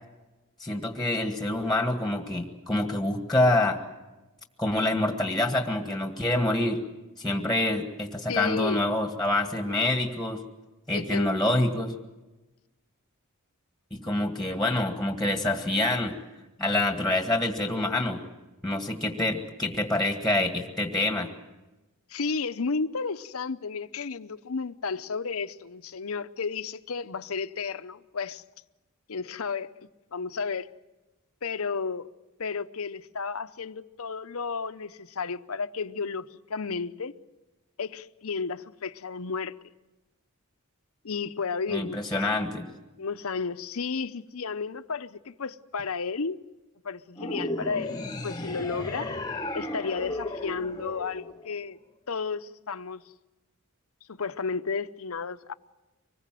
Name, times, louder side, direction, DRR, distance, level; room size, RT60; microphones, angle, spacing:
voice 1, 0.6-3.8 4.6-6.8 7.2-10.4 10.9-11.9 13.9-16.1 16.6-18.2 18.6-21.3 41.7-42.7, left 1 dB, ahead, 1.8 m, -26 dB
voice 2, 8.3-8.8 10.9-11.5 22.1-28.4 29.1-29.7 30.1-30.7 31.4-32.1 32.4-37.1 37.8-39.6 41.0-42.5 43.0-46.4 46.8-47.9 48.2-49.1 49.5-51.8 52.1-53.0 54.1-55.5, left 5 dB, 70° left, 0.8 m, -32 dB
sound 1, 47.2-51.7, left 1 dB, 20° left, 1.2 m, -35 dB
25.0 x 21.0 x 7.6 m
head